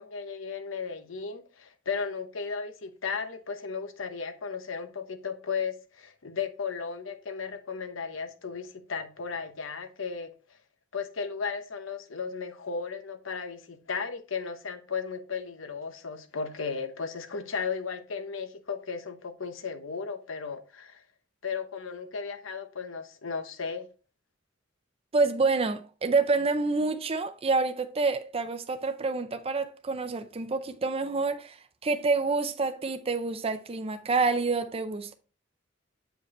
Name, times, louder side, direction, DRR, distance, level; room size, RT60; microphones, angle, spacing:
voice 1, 0.0-10.3 10.9-21.0 21.4-23.9, left 5 dB, 85° left, 0.9 m, -35 dB
voice 2, 25.1-31.6 31.8-35.1, right 3 dB, 30° right, 0.5 m, -27 dB
8.0 x 5.1 x 3.1 m
head